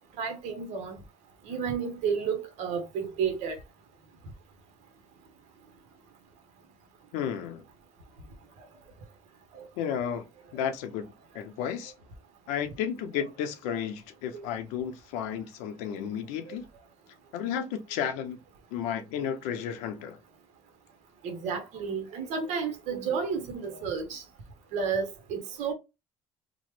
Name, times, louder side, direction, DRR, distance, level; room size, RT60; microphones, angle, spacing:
voice 1, 0.2-1.0 1.5-3.6 9.5-9.7 14.3-14.5 16.5-16.6 17.4-17.5 21.2-24.2 24.7-25.7, right 6 dB, 65° right, 0.9 m, -32 dB
voice 2, 7.1-7.6 9.8-10.3 10.5-11.0 11.3-11.9 12.5-16.6 17.3-18.4 18.7-20.2, left 8 dB, 85° left, 0.6 m, -32 dB
3.0 x 2.1 x 3.1 m
supercardioid pair, 85°, 12 cm